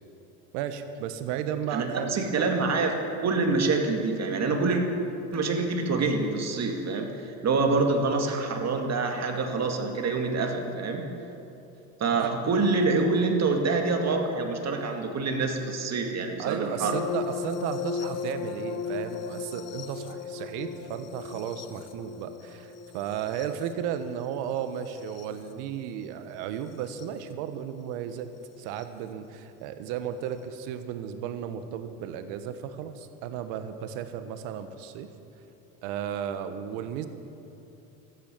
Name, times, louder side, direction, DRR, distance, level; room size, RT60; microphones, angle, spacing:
voice 1, 0.5-2.5 12.2-12.3 16.4-28.3 28.6-35.1 35.8-37.1, right 9 dB, 70° right, 10 dB, 1.3 m, -34 dB
voice 2, 1.7-3.0 3.2-4.8 5.3-11.1 12.0-17.0, right 3 dB, 35° right, 4 dB, 2.1 m, -26 dB
sound 1, 16.8-25.5 26.8-27.1 28.8-28.9, left 6 dB, 35° left, 1.1 m, -36 dB
13.5 x 9.4 x 8.9 m, 2.9 s
supercardioid pair, 90°, 44 cm